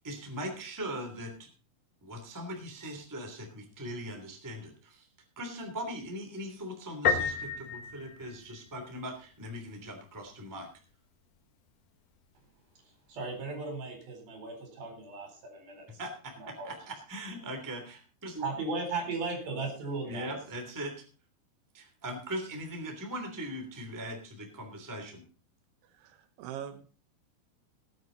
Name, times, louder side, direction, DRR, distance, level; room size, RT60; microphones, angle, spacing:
voice 1, 0.0-1.5 2.0-5.1 5.4-10.7 15.9-16.4 16.6-18.5 20.0-21.0 21.7-25.2, equal, 5° right, 3 dB, 2.1 m, -40 dB
Piano, 7.0-8.9, left 5 dB, 65° left, 1.6 m, -31 dB
voice 2, 13.1-16.0 16.4-16.8 18.4-20.4, right 3 dB, 55° right, 3 dB, 5.7 m, -36 dB
voice 3, 25.9-27.0, right 10 dB, 90° right, 8 dB, 3.6 m, -43 dB
19.0 x 9.4 x 4.0 m, 0.36 s
omnidirectional pair, 5.2 m